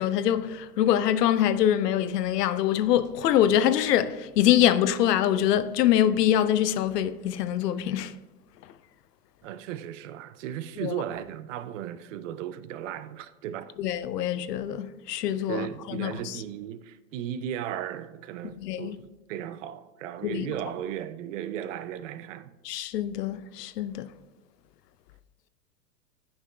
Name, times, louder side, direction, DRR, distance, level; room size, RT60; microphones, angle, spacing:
voice 1, 0.0-8.1 10.8-10.9 13.8-15.7 16.0-16.1 18.6-19.0 20.2-20.4 22.7-24.1, left 11 dB, 85° left, 0.5 m, -24 dB
voice 2, 9.4-13.7 15.5-19.0 19.3-22.6, right 10 dB, 55° right, 0.5 m, -36 dB
9.5 x 5.7 x 2.3 m
hypercardioid pair, 110°, 47 cm